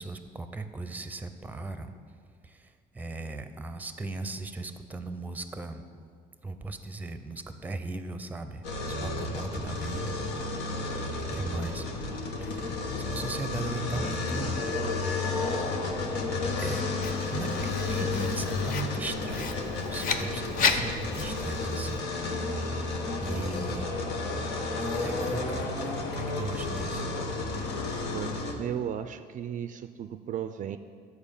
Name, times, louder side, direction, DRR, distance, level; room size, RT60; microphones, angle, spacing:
voice 1, 0.0-1.9 2.4-5.8 6.4-10.2 11.3-14.6 16.6-16.8 17.3-22.7 23.2-23.9 25.0-27.1, right 2 dB, 10° right, 9 dB, 0.6 m, -38 dB
sound 1, 8.6-28.5, left 3 dB, 80° left, 1.2 m, -32 dB
sound 2, 11.5-28.4, left 2 dB, 20° left, 0.9 m, -47 dB
Writing, 17.0-22.0, left 5 dB, 55° left, 0.7 m, -33 dB
voice 2, 28.6-30.8, right 9 dB, 50° right, 10 dB, 0.4 m, -35 dB
10.5 x 4.7 x 7.0 m, 2.1 s
cardioid pair, 110°, 17 cm